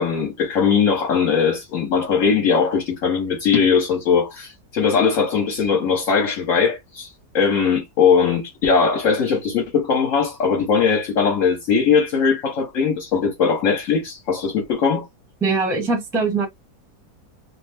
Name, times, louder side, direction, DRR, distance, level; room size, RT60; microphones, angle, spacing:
voice 1, 0.0-15.1, left 6 dB, 60° left, 1.1 m, -20 dB
voice 2, 15.4-16.5, right 4 dB, ahead, 0.7 m, -21 dB
3.0 x 2.0 x 3.3 m
omnidirectional pair, 1.7 m